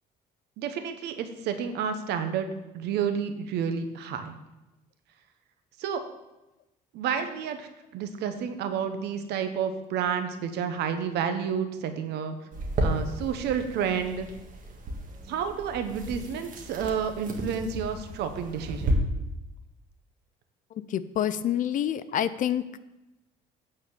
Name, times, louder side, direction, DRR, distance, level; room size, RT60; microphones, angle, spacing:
voice 1, 0.6-2.5 2.7-4.3 5.8-6.0 6.9-12.4 12.8-14.3 15.3-19.0, right 7 dB, 80° right, 8 dB, 1.0 m, -30 dB
sound 1, 12.5-18.9, right 1 dB, 50° right, 1.7 m, -34 dB
voice 2, 20.7-22.7, left 10 dB, 50° left, 15 dB, 0.5 m, -27 dB
8.8 x 4.4 x 7.1 m, 0.98 s
cardioid pair, 110°, 17 cm